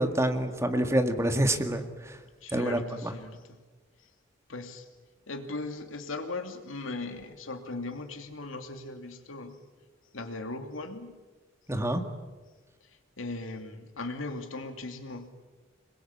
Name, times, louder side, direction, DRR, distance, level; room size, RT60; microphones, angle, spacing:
voice 1, 0.0-1.9 2.5-3.1 11.7-12.0, right 1 dB, 15° right, 6 dB, 1.8 m, -27 dB
voice 2, 2.4-3.4 4.5-4.9 5.3-9.6 10.1-11.2 13.2-15.5, left 2 dB, 90° left, 6 dB, 2.7 m, -38 dB
27.0 x 21.5 x 8.6 m, 1.3 s
head